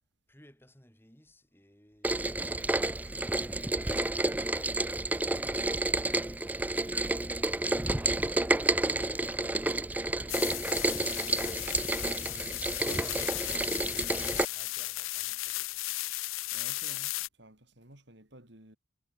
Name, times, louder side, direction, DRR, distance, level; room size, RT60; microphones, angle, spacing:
voice 1, 0.3-6.8 12.6-15.9, equal, 10° left, 7.3 m, -59 dB
Rain, 2.0-14.5, right 2 dB, 10° right, 0.4 m, -30 dB
sound 1, 10.3-17.3, left 19 dB, 85° left, 0.5 m, -35 dB
voice 2, 11.1-12.6 12.9-13.3 16.5-18.8, right 1 dB, 60° right, 5.5 m, -53 dB
head